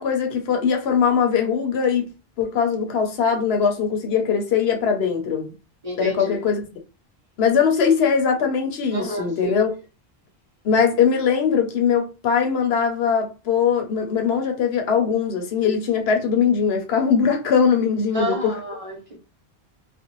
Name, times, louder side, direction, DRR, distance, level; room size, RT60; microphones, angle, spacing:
voice 1, 0.0-2.1 2.4-5.5 6.0-6.6 7.4-9.7 10.6-18.6, left 6 dB, 80° left, 0.9 m, -21 dB
voice 2, 5.8-6.4 8.9-9.6 18.1-19.2, equal, 35° right, 1.0 m, -29 dB
2.5 x 2.2 x 2.9 m
omnidirectional pair, 1.1 m